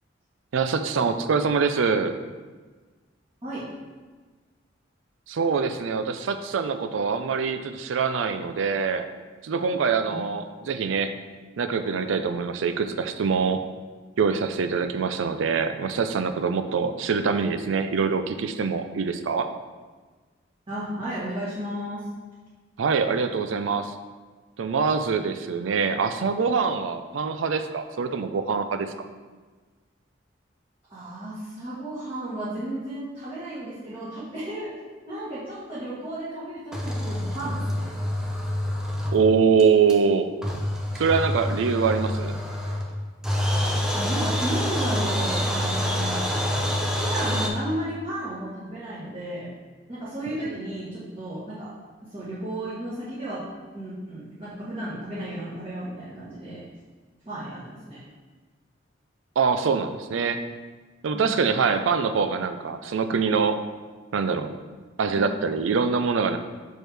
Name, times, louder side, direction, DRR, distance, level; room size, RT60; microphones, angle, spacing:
voice 1, 0.5-2.1 5.3-9.1 9.4-11.1 11.6-13.6 14.2-19.5 22.8-23.9 24.6-28.9 39.1-40.3 41.0-42.4 59.4-60.4 61.0-63.6 64.1-64.5 65.0-66.4, right 5 dB, 85° right, 9 dB, 0.4 m, -24 dB
voice 2, 20.7-22.1 30.9-34.7 35.1-38.0 41.9-42.2 43.9-46.2 46.9-49.5 49.9-51.7 52.1-53.4 53.7-56.7 57.2-58.0 61.1-61.4 65.2-65.3, right 1 dB, 30° right, -12 dB, 1.5 m, -34 dB
sound 1, 36.7-39.3 39.6-39.7 39.9-40.0 40.4-43.0 43.2-47.5, left 1 dB, 5° right, 0.6 m, -27 dB
6.4 x 4.4 x 3.3 m, 1.4 s
head